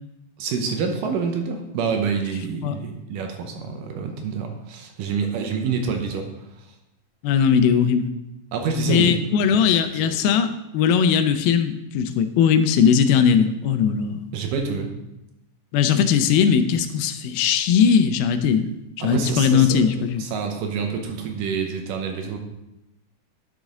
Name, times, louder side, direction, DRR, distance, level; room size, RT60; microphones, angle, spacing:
voice 1, 0.4-6.3 8.5-10.2 14.3-14.9 19.0-19.9 20.2-22.4, right 5 dB, 75° right, 4 dB, 2.3 m, -27 dB
voice 2, 7.2-8.1 8.9-14.2 15.7-18.7 19.0-20.2, left 7 dB, 90° left, 9 dB, 2.5 m, -19 dB
10.5 x 6.2 x 3.7 m, 0.90 s
omnidirectional pair, 4.2 m